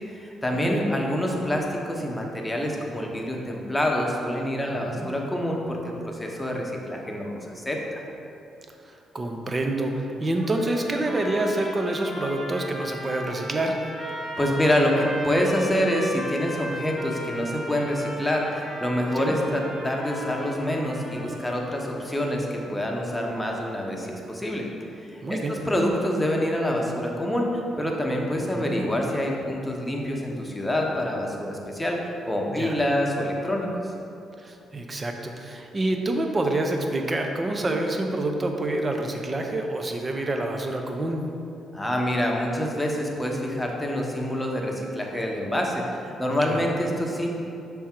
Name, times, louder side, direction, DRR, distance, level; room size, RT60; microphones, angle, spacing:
voice 1, 0.0-8.0 14.4-24.6 25.0-32.0 32.3-33.7 41.7-45.8 46.2-47.3, left 1 dB, 10° left, -1 dB, 0.9 m, -26 dB
voice 2, 0.5-0.8 4.7-5.1 8.9-13.8 19.1-19.4 25.2-25.5 28.5-28.8 32.5-32.8 34.4-41.2 46.4-46.6, right 2 dB, 30° right, 3 dB, 0.6 m, -27 dB
sound 1, 10.4-21.9, equal, 10° right, 1.1 m, -37 dB
6.4 x 3.6 x 4.4 m, 2.7 s
cardioid pair, 90°, 0 cm